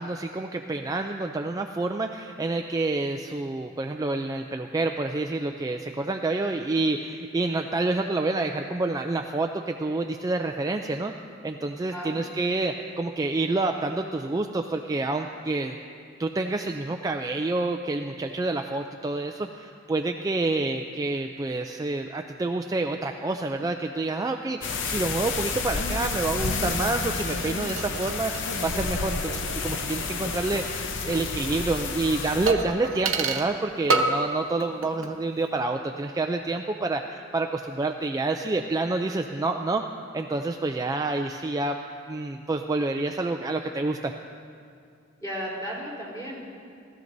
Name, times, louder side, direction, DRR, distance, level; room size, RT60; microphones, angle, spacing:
voice 1, 0.0-11.1 11.4-15.8 16.2-39.8 40.1-41.8 42.1-44.1, right 2 dB, 20° right, 4 dB, 0.3 m, -28 dB
voice 2, 11.8-12.2 29.2-29.4 45.2-46.4, equal, 15° left, -6 dB, 3.9 m, -35 dB
sound 1, 24.6-32.5, left 4 dB, 65° left, 0.7 m, -30 dB
sound 2, 27.3-30.7 30.9-31.0 32.5-33.6 33.9-34.3 34.6-35.2 35.4-35.5, right 3 dB, 80° right, 0.9 m, -30 dB
19.5 x 13.5 x 2.6 m, 2.3 s
head